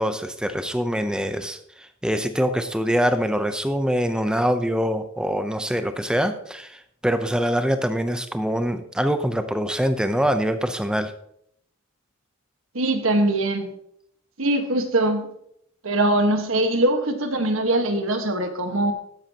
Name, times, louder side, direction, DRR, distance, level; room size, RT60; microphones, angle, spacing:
voice 1, 0.0-11.1, equal, 5° right, 9 dB, 0.6 m, -24 dB
voice 2, 12.7-13.7 14.4-15.3 15.8-18.9, right 1 dB, 70° right, 6 dB, 1.5 m, -22 dB
13.5 x 10.5 x 2.9 m, 0.72 s
head